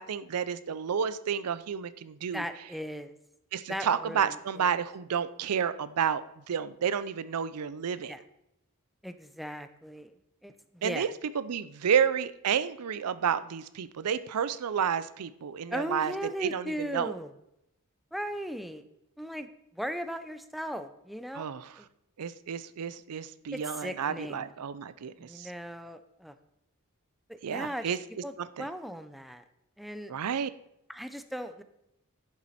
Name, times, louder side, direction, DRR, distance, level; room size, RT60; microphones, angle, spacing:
voice 1, 0.0-2.4 3.5-8.1 10.8-16.1 16.4-17.1 21.3-21.7 22.2-25.5 27.4-28.0 28.4-28.7 30.1-30.5, right 7 dB, 85° right, 15 dB, 0.5 m, -30 dB
voice 2, 2.3-3.2 3.7-4.8 8.1-8.2 9.0-10.1 10.4-11.1 15.7-17.3 18.1-18.8 19.2-21.9 23.5-24.5 25.2-26.3 27.3-27.9 28.2-28.3 28.6-29.4 29.8-30.1 30.9-31.6, equal, ahead, 10 dB, 0.5 m, -38 dB
10.5 x 7.3 x 4.2 m, 0.82 s
head